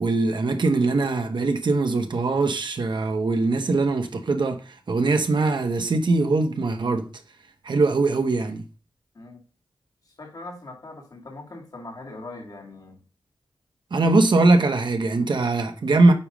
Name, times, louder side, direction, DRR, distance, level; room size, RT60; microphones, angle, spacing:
voice 1, 0.0-7.1 7.6-8.6 13.9-16.1, right 3 dB, 60° right, 1.1 m, -21 dB
voice 2, 10.1-13.0, left 2 dB, 50° left, 2.3 m, -41 dB
8.7 x 3.2 x 5.0 m
wide cardioid pair, 85°, 9 cm